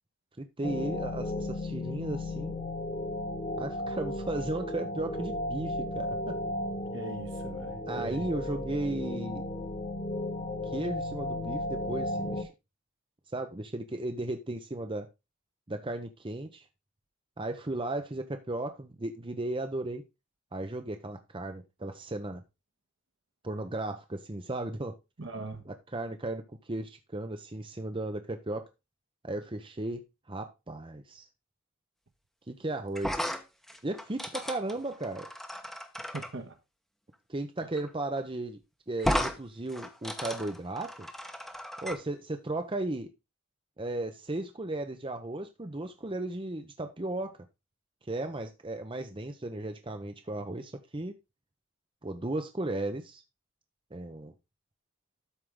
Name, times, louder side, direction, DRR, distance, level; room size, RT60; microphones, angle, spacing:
voice 1, 0.4-2.6 3.6-6.4 7.9-9.4 10.6-12.5 13.3-15.1 15.7-16.7 17.4-20.0 20.5-22.4 23.4-25.0 25.7-28.7 29.2-30.0 30.3-31.3 32.5-33.3 33.8-35.3 37.3-38.6 38.9-41.1 41.8-43.1 43.8-47.4 48.0-51.1 52.0-53.2 53.9-54.3, right 2 dB, 25° right, 0.8 m, -35 dB
sound 1, 0.6-12.4, left 1 dB, 25° left, 1.3 m, -35 dB
voice 2, 6.9-8.3 25.2-25.7 36.1-36.6 37.6-37.7, right 2 dB, 60° right, 1.6 m, -40 dB
sound 2, 32.9-36.3 37.8-37.9 38.2-38.3 39.0-39.4 39.7-42.0, equal, ahead, 1.0 m, -34 dB
12.5 x 4.8 x 3.7 m
head